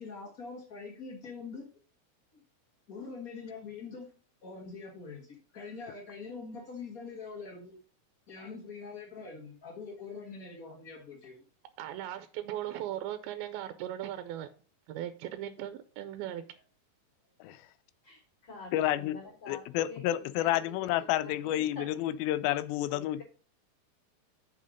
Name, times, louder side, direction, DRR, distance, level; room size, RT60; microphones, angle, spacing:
voice 1, 0.0-1.7 2.3-2.4 2.9-4.1 4.4-7.7 8.3-11.4, left 4 dB, 55° left, 0.9 m, -44 dB
voice 2, 11.8-14.5 14.9-16.4, right 12 dB, 85° right, 2.5 m, -38 dB
voice 3, 18.0-22.0 22.9-23.2, left 3 dB, 30° left, 4.0 m, -47 dB
voice 4, 18.7-19.1 19.5-23.2, left 13 dB, 85° left, 2.4 m, -30 dB
7.6 x 5.6 x 5.1 m
omnidirectional pair, 4.3 m